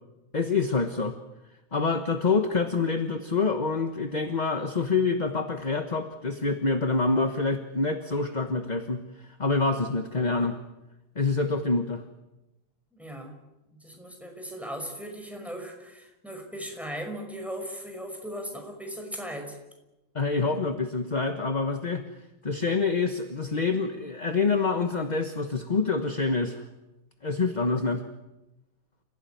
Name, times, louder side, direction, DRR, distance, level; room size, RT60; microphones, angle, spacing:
voice 1, 0.3-1.1 1.7-10.6 11.1-12.0 20.1-22.0 22.4-26.6 27.2-28.0, left 4 dB, 25° left, 7 dB, 1.1 m, -26 dB
voice 2, 12.9-13.3 13.8-19.6, equal, ahead, 3 dB, 5.6 m, -38 dB
29.5 x 16.5 x 9.3 m, 1.0 s
omnidirectional pair, 2.2 m